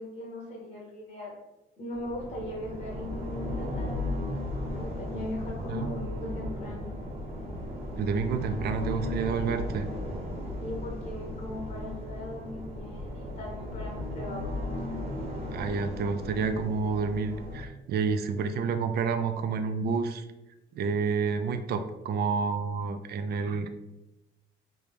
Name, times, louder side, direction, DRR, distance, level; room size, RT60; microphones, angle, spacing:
voice 1, 0.0-1.4 1.8-4.1 4.7-6.9 10.6-14.4, left 1 dB, 45° left, -3 dB, 0.9 m, -39 dB
sound 1, 1.9-17.6, left 1 dB, 30° right, 1.0 m, -36 dB
voice 2, 8.0-9.9 15.5-20.2 20.8-23.7, right 5 dB, 55° right, 8 dB, 0.4 m, -29 dB
3.2 x 2.7 x 3.4 m, 0.97 s
cardioid pair, 90°, 20 cm